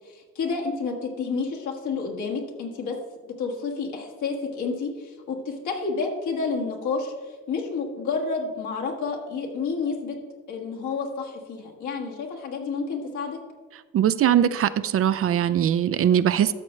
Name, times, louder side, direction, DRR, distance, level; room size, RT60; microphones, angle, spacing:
voice 1, 0.1-3.0 3.4-7.1 7.5-10.2 10.5-13.4, left 4 dB, 75° left, 0 dB, 1.7 m, -30 dB
voice 2, 13.9-16.5, right 10 dB, 50° right, 13 dB, 0.4 m, -21 dB
13.0 x 6.2 x 3.2 m, 1.4 s
cardioid pair, 90°, 30 cm